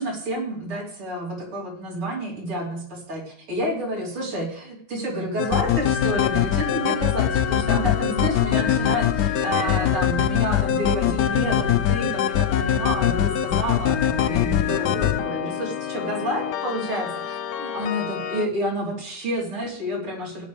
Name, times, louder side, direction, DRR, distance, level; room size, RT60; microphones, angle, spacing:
voice 1, 0.0-20.4, equal, 85° right, -4 dB, 4.2 m, -29 dB
sound 1, 5.4-18.5, left 10 dB, 80° left, 0.8 m, -23 dB
17.0 x 9.9 x 3.4 m, 0.64 s
omnidirectional pair, 2.3 m